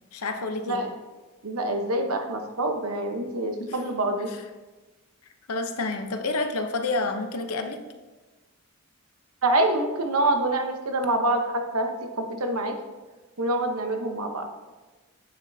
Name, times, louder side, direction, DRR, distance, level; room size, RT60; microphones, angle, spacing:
voice 1, 0.1-0.8 3.6-3.8 4.3-4.4 5.5-7.8, left 3 dB, 85° left, 6 dB, 0.8 m, -29 dB
voice 2, 1.4-4.3 9.4-12.7 13.4-14.5, right 1 dB, 80° right, 4 dB, 1.0 m, -26 dB
8.9 x 7.1 x 2.7 m, 1.2 s
head